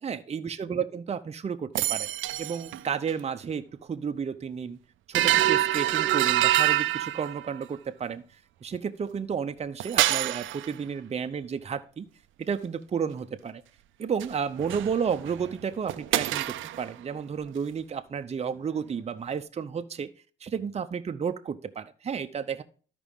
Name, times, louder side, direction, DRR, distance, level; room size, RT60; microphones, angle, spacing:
voice 1, 0.0-2.1 2.4-4.8 5.1-8.2 8.6-12.1 12.4-13.6 14.0-20.1 20.4-22.6, right 6 dB, 35° right, 8 dB, 0.7 m, -32 dB
sound 1, 1.8-2.8 3.1-3.2 5.1-7.6 9.8-10.7 14.2-14.3 14.6-15.5 15.9-16.9, right 14 dB, 80° right, 0.5 m, -26 dB
13.0 x 5.0 x 3.6 m, 0.40 s
cardioid pair, 90°, 20 cm